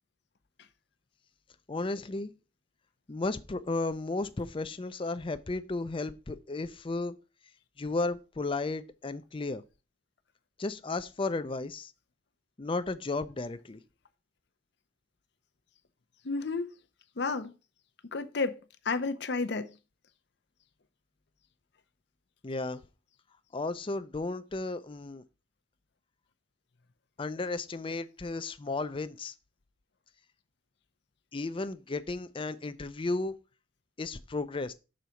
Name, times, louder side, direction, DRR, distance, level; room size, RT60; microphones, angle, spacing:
voice 1, 1.7-2.3 3.1-7.1 7.8-9.6 10.6-11.9 12.6-13.8 22.4-22.8 23.5-25.2 27.2-29.3 31.3-33.3 34.0-34.7, left 3 dB, 30° left, 0.5 m, -34 dB
voice 2, 16.2-16.7 17.2-17.5 18.1-18.6 18.8-19.7, left 4 dB, 65° left, 0.7 m, -31 dB
6.4 x 4.0 x 5.7 m
head